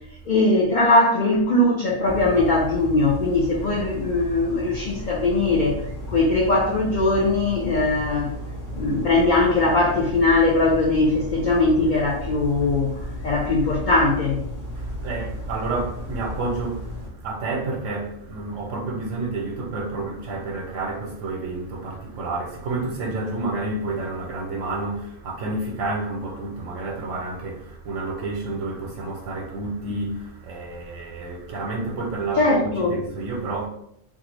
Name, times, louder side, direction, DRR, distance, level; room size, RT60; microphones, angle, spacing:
voice 1, 0.3-5.8 6.1-8.4 8.8-14.4 32.4-32.9, left 2 dB, 50° left, 0.6 m, -20 dB
sound 1, 2.0-17.1, equal, 20° left, 0.7 m, -34 dB
voice 2, 14.7-33.7, right 3 dB, 90° right, 1.0 m, -30 dB
3.5 x 2.4 x 3.1 m
omnidirectional pair, 1.3 m